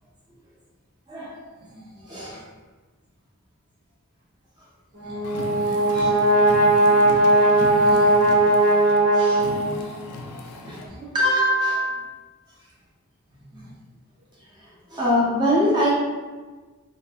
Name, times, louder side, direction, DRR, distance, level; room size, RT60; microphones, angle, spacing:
voice 1, 1.1-1.4 1.7-2.4 5.0-6.3 7.7-8.2 9.1-9.4 9.9-10.0 10.3-12.1 13.5-13.7 14.9-15.9, equal, 20° right, -6 dB, 0.4 m, -25 dB
Brass instrument, 4.9-10.0, right 1 dB, 80° right, 1.0 m, -18 dB
Car, 5.2-10.9, left 2 dB, 75° left, 0.3 m, -36 dB
2.5 x 2.4 x 2.3 m, 1.3 s
head